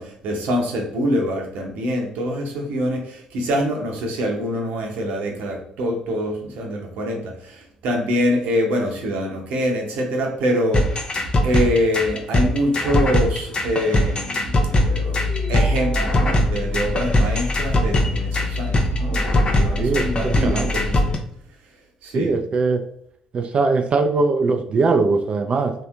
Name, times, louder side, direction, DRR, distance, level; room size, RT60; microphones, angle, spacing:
voice 1, 0.0-11.1 11.4-15.2 15.5-21.1 22.0-22.3, equal, 65° right, 1 dB, 0.8 m, -25 dB
sound 1, 10.7-21.2, left 1 dB, 35° left, 0.6 m, -21 dB
voice 2, 19.8-20.7 22.1-22.8 23.3-25.7, right 4 dB, 40° right, 6 dB, 0.4 m, -20 dB
3.1 x 2.8 x 2.4 m, 0.69 s
figure-of-eight pair, 50°, 3 cm